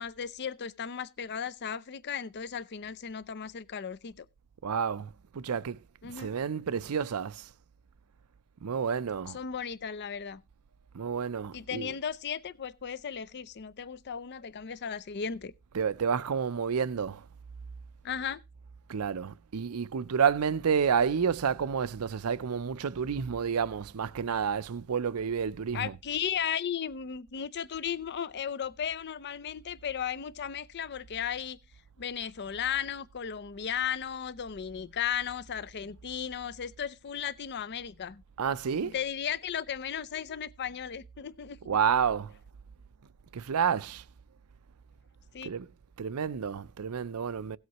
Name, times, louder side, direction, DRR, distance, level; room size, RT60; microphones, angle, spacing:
voice 1, 0.0-4.3 6.0-6.3 9.3-10.4 11.5-15.5 18.0-18.4 25.7-31.6 32.0-38.2 38.8-41.6 45.3-45.5, left 8 dB, 50° left, 0.5 m, -35 dB
voice 2, 4.6-5.8 6.0-7.5 8.6-9.4 10.9-12.0 15.7-17.2 18.9-26.0 38.4-39.0 41.6-42.3 43.3-44.0 45.4-45.7 46.0-47.6, right 7 dB, 80° right, 0.5 m, -30 dB
17.0 x 8.0 x 2.9 m
head